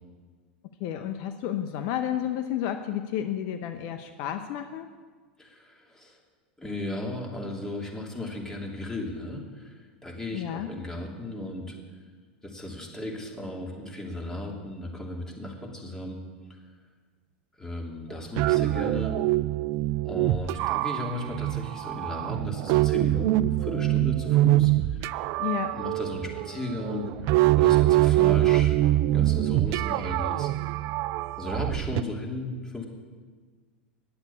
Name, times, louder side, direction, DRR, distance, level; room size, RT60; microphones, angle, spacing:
voice 1, 0.8-4.9 10.3-10.7 25.4-25.7, left 10 dB, 55° left, 8 dB, 0.7 m, -31 dB
voice 2, 5.4-6.2 6.6-11.7 12.4-16.2 17.6-19.2 20.0-25.3 25.7-27.1 27.6-28.8 29.1-30.5 31.4-32.9, left 1 dB, 10° left, -1 dB, 2.8 m, -35 dB
sound 1, 18.1-32.0, right 16 dB, 50° right, 0.3 m, -24 dB
10.5 x 8.0 x 8.4 m, 1.5 s
hypercardioid pair, 90°, 6 cm